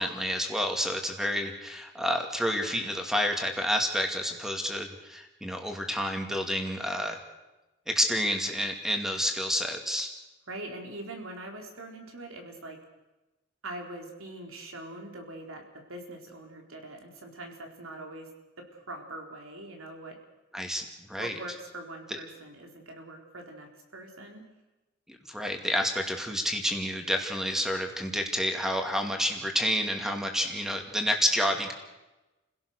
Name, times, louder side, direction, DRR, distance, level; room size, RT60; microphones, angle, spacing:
voice 1, 0.0-7.2 7.9-10.1 20.5-21.3 22.1-22.2 25.1-31.7, equal, ahead, 4 dB, 2.4 m, -29 dB
voice 2, 10.5-12.8 13.6-18.3 18.6-20.2 21.2-24.5, right 1 dB, 85° right, 2 dB, 4.3 m, -43 dB
29.5 x 17.0 x 6.6 m, 1.0 s
head